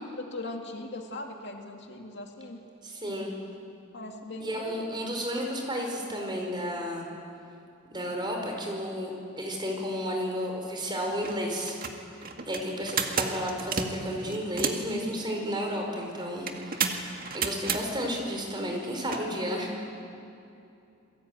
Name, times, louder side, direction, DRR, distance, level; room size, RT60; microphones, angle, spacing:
voice 1, 0.2-2.6 3.9-4.9, left 2 dB, 55° left, 2 dB, 2.3 m, -39 dB
voice 2, 2.8-3.3 4.4-7.1 7.9-9.1 9.4-11.8 12.5-17.0 17.3-19.7, equal, 20° right, 1 dB, 5.3 m, -32 dB
sound 1, 10.7-10.8 11.1-11.4 11.7-14.9 16.5-17.8 19.1-19.2, right 6 dB, 40° right, 2.1 m, -31 dB
28.0 x 22.0 x 9.6 m, 2.7 s
head